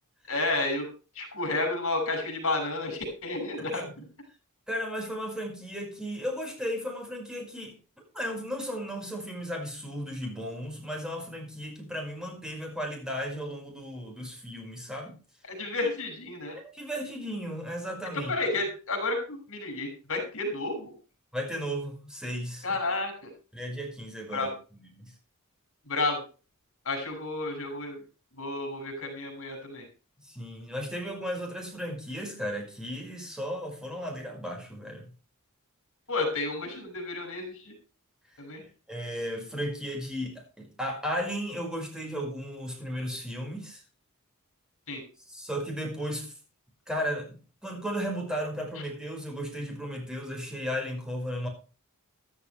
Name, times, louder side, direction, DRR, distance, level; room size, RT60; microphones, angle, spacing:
voice 1, 0.3-0.9 1.1-3.8 15.5-16.6 18.1-20.9 22.6-23.3 24.3-24.5 25.9-26.2 26.8-28.0 28.4-29.8 36.1-37.7 38.4-38.6 44.9-45.0, left 2 dB, 65° left, 4 dB, 6.3 m, -31 dB
voice 2, 4.7-7.7 8.1-15.1 16.5-18.3 21.3-22.8 23.5-25.1 30.2-35.1 38.3-38.4 38.9-43.8 45.3-46.3 46.9-51.5, equal, 5° right, 1 dB, 5.3 m, -35 dB
14.5 x 13.0 x 3.3 m, 0.35 s
head